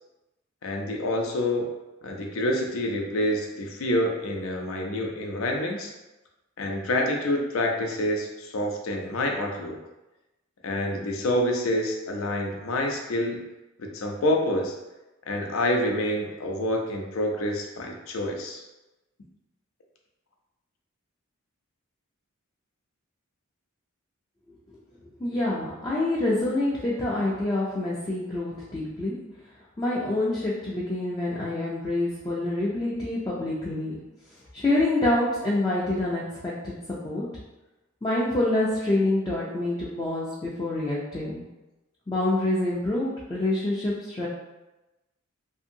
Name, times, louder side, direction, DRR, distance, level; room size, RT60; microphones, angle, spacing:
voice 1, 0.6-1.7 2.0-5.9 6.6-9.8 10.6-13.4 13.8-14.7 15.3-18.6, left 1 dB, 80° left, 1 dB, 0.5 m, -27 dB
voice 2, 25.2-29.2 29.8-34.0 34.5-37.3 38.0-41.4 42.1-44.3, left 2 dB, 20° left, -7 dB, 0.4 m, -26 dB
2.7 x 2.6 x 2.6 m, 1.0 s
head